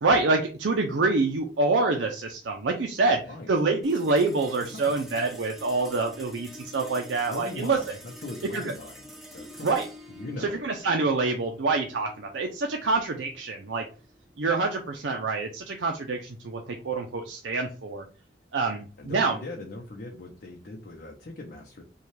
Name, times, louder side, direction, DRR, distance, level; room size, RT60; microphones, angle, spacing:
voice 1, 0.0-3.2 3.5-7.8 8.5-8.7 9.6-9.9 10.4-13.8 14.4-18.0 18.5-19.4, right 3 dB, 90° right, 2 dB, 0.6 m, -26 dB
sound 1, 3.8-14.4, equal, ahead, 0.8 m, -47 dB
voice 2, 4.6-5.0 7.2-9.7 10.1-10.6 19.0-21.8, left 2 dB, 60° left, 0 dB, 0.7 m, -40 dB
5.4 x 2.4 x 3.2 m, 0.36 s
head